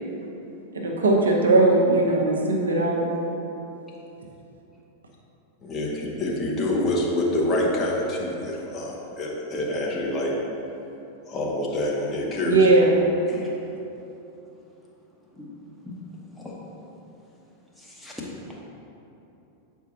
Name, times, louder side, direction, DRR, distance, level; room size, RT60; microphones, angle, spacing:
voice 1, 0.7-3.0 12.5-12.9, right 2 dB, 70° right, -1 dB, 0.8 m, -19 dB
voice 2, 5.6-10.3 11.3-12.7, left 1 dB, 30° left, -3 dB, 1.0 m, -26 dB
voice 3, 13.3-13.7 15.3-15.5 15.8-15.9 16.3-16.6 17.7-18.6, left 2 dB, 5° left, -5 dB, 1.1 m, -40 dB
8.0 x 4.6 x 2.8 m, 2.9 s
figure-of-eight pair, 90°, 0 cm